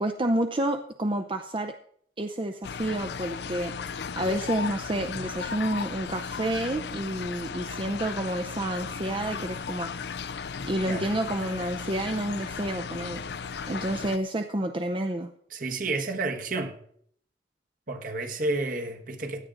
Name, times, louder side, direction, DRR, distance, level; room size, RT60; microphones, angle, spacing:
voice 1, 0.0-1.8 2.2-9.9 10.3-13.2 13.7-15.3, right 1 dB, 30° right, 0.6 m, -29 dB
sound 1, 2.6-14.2, left 6 dB, 65° left, 0.5 m, -36 dB
voice 2, 15.5-16.8 17.9-19.5, right 3 dB, 50° right, 1.4 m, -31 dB
16.5 x 10.5 x 3.9 m
head